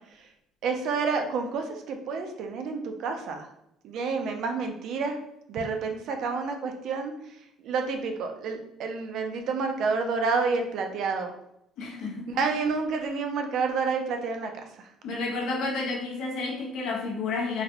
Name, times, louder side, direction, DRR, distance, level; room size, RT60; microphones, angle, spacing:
voice 1, 0.6-3.5 3.8-5.2 5.5-7.1 7.6-11.4 12.3-14.5 14.8-14.9, right 4 dB, 55° right, 5 dB, 0.4 m, -29 dB
voice 2, 11.8-12.3 15.0-17.6, left 3 dB, 70° left, -1 dB, 0.8 m, -31 dB
4.0 x 2.2 x 2.8 m, 0.80 s
cardioid pair, 165°, 0 cm